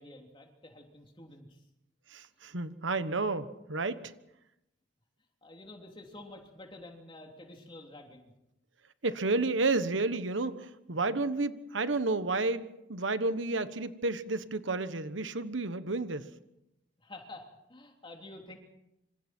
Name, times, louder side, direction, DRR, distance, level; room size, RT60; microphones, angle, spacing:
voice 1, 0.0-1.6 5.4-8.3 17.0-18.6, left 2 dB, 25° left, 2 dB, 3.3 m, -49 dB
voice 2, 2.1-4.1 9.0-16.3, right 3 dB, 90° right, 12 dB, 1.3 m, -31 dB
26.5 x 26.5 x 4.5 m, 0.86 s
head